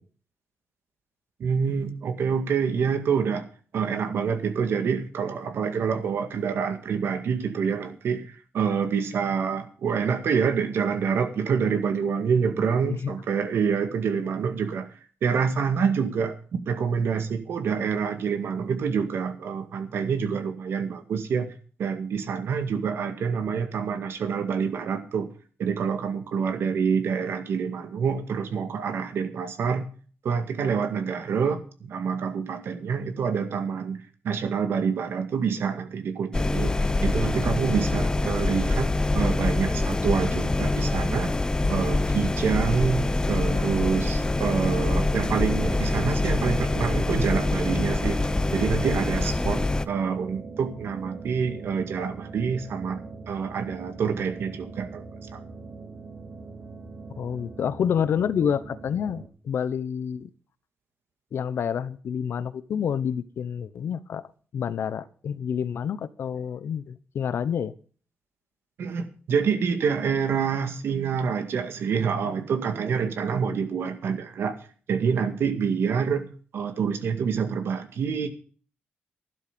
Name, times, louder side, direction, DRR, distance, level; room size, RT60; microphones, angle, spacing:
voice 1, 1.4-3.5 3.7-14.9 15.2-21.5 21.8-25.3 25.6-29.9 30.2-41.3 41.7-55.0 55.3-55.4 68.8-74.6 74.9-76.3 76.5-78.3, right 6 dB, 80° right, 8 dB, 2.0 m, -27 dB
voice 2, 12.8-13.1 57.2-60.3 61.3-64.2 64.5-67.7, left 8 dB, 75° left, 15 dB, 0.9 m, -28 dB
sound 1, 36.3-49.8, left 2 dB, 20° left, 0.8 m, -25 dB
sound 2, 42.6-59.3, right 4 dB, 45° right, 3.4 m, -41 dB
12.0 x 11.5 x 5.1 m, 0.42 s
cardioid pair, 85°, 4 cm